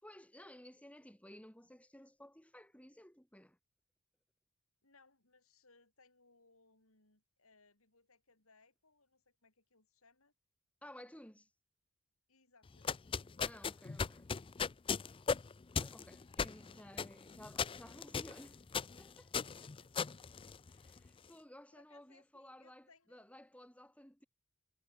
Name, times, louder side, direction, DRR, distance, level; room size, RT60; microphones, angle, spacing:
voice 1, 0.0-3.6 10.8-11.5 13.4-14.4 15.7-18.6 19.0-19.3 20.7-24.3, left 1 dB, 5° left, 3.4 m, -56 dB
voice 2, 4.8-10.3 12.3-13.0 19.4-20.5 21.7-23.2, left 3 dB, 65° left, 6.0 m, -69 dB
sound 1, 12.7-21.1, left 6 dB, 25° left, 0.4 m, -38 dB
head